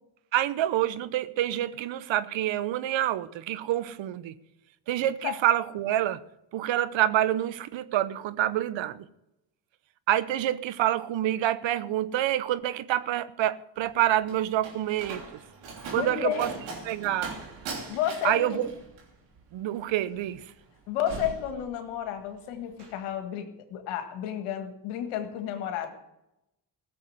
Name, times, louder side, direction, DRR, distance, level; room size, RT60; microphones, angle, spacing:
voice 1, 0.3-4.4 4.9-6.2 6.5-9.1 10.1-15.2 15.9-16.5 16.9-17.4 18.2-18.7 19.5-20.4, right 12 dB, 65° right, 0.9 m, -27 dB
Slam, 13.8-22.2 22.5-23.0, right 4 dB, 80° right, 3.3 m, -41 dB
voice 2, 15.9-16.5 17.9-18.7 20.9-25.9, left 10 dB, 80° left, 1.8 m, -31 dB
16.0 x 7.1 x 7.9 m
hypercardioid pair, 50°, 50 cm